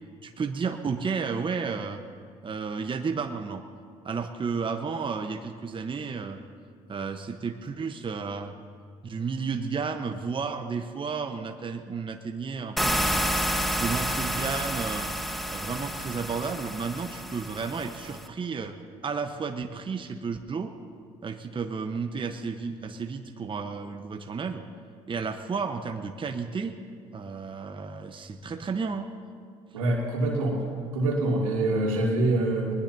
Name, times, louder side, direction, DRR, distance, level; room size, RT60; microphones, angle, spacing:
voice 1, 0.2-2.0 2.4-3.6 4.0-6.4 6.9-8.5 9.0-13.2 13.8-15.1 15.5-18.8 19.0-20.7 21.2-24.6 25.1-26.7 27.1-29.1, right 5 dB, 30° right, 6 dB, 1.0 m, -32 dB
sound 1, 12.8-18.3, equal, ahead, 1.3 m, -30 dB
voice 2, 29.7-30.6 30.9-32.7, right 2 dB, 90° right, -3 dB, 2.8 m, -25 dB
21.0 x 20.5 x 2.8 m, 2.2 s
hypercardioid pair, 60°, 17 cm